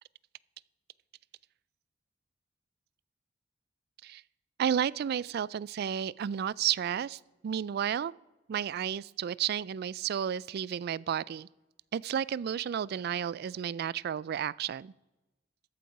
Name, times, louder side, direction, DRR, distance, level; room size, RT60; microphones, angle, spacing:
voice 1, 4.6-8.1 8.5-11.5 11.9-14.9, right 9 dB, 55° right, 22 dB, 0.3 m, -32 dB
13.5 x 8.5 x 5.3 m, 1.0 s
head